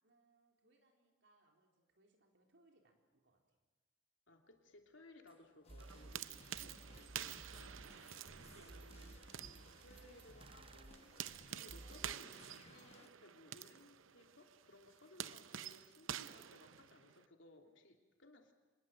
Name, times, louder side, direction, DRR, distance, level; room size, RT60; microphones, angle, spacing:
voice 1, 0.0-3.6 6.6-7.0 8.3-9.0, right 2 dB, 60° right, 1 dB, 4.0 m, -72 dB
voice 2, 4.3-18.5, left 2 dB, 70° left, 2 dB, 3.0 m, -62 dB
sound 1, 5.3-5.4 5.7-12.1, right 2 dB, 25° right, 0.7 m, -57 dB
sound 2, 5.6-13.1, left 3 dB, 30° left, 1.2 m, -64 dB
sound 3, 5.8-17.2, right 10 dB, 85° right, 0.7 m, -50 dB
26.0 x 20.5 x 7.8 m, 1.3 s
head